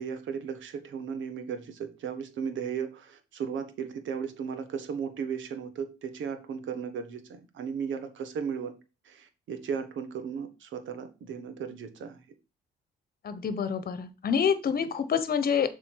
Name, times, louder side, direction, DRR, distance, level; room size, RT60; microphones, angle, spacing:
voice 1, 0.0-8.8 9.0-12.2 14.8-14.9, right 6 dB, 75° right, 1.5 m, -36 dB
voice 2, 13.2-15.7, left 7 dB, 50° left, 1.2 m, -27 dB
7.2 x 4.4 x 4.7 m
cardioid pair, 90°, 20 cm